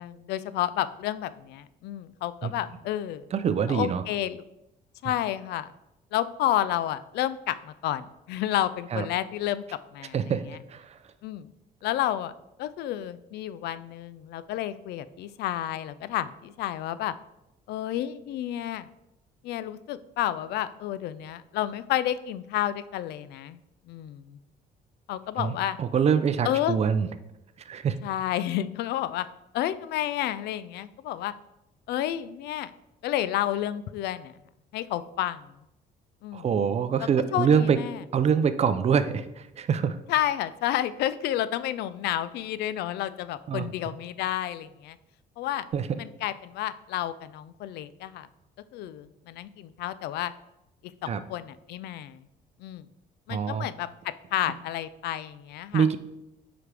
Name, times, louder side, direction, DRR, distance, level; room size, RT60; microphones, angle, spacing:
voice 1, 0.0-3.3 3.7-4.4 5.0-5.7 6.1-9.6 9.9-10.2 11.2-11.5 11.8-12.3 12.6-17.1 17.7-18.9 19.4-23.6 23.9-24.4 25.1-25.8 26.4-26.8 28.0-29.3 29.5-31.3 31.9-32.7 33.0-34.3 34.7-35.5 36.2-36.5 37.3-38.0 40.1-45.0 45.4-45.7 46.0-48.3 48.7-50.3 51.0-52.3 52.6-52.8 53.3-53.9 54.3-55.9, left 12 dB, 75° left, 15 dB, 0.4 m, -30 dB
voice 2, 3.3-4.0 8.9-9.1 10.1-10.4 10.7-11.0 25.4-27.1 27.7-28.0 36.3-37.8 38.1-40.0 43.5-43.7 45.7-45.9 51.1-51.2 53.3-53.7 55.7-56.0, right 7 dB, 40° right, 12 dB, 0.5 m, -25 dB
8.7 x 5.0 x 3.4 m, 0.89 s
cardioid pair, 110°, 17 cm